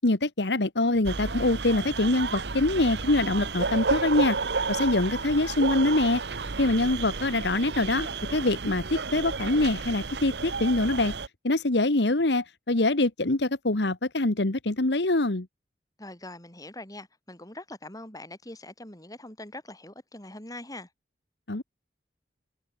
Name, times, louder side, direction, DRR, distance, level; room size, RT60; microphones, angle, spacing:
voice 1, 0.0-4.4 4.7-6.2 6.6-11.1 11.4-15.5 21.5-21.6, left 2 dB, 75° left, 1.6 m, -24 dB
sound 1, 1.0-11.3, right 4 dB, 70° right, 1.1 m, -31 dB
voice 2, 16.0-20.9, left 1 dB, 20° left, 7.3 m, -43 dB
head